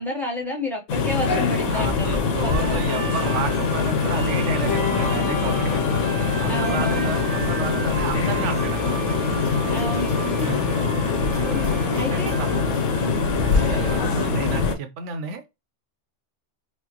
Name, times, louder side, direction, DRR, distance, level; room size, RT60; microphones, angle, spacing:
voice 1, 0.0-2.9 6.5-7.1 9.7-10.1 11.5-11.7 12.0-12.4 13.0-13.4 13.8-14.3, left 1 dB, ahead, 0.7 m, -30 dB
sound 1, 0.9-14.7, left 5 dB, 85° left, 1.0 m, -23 dB
voice 2, 1.7-6.1 6.4-9.0 10.4-10.7 11.3-12.8 13.6-15.5, right 5 dB, 75° right, 1.0 m, -31 dB
sound 2, 2.5-14.1, right 5 dB, 50° right, 0.9 m, -36 dB
sound 3, 3.2-8.7, left 8 dB, 65° left, 0.8 m, -34 dB
4.4 x 2.0 x 2.8 m
omnidirectional pair, 1.3 m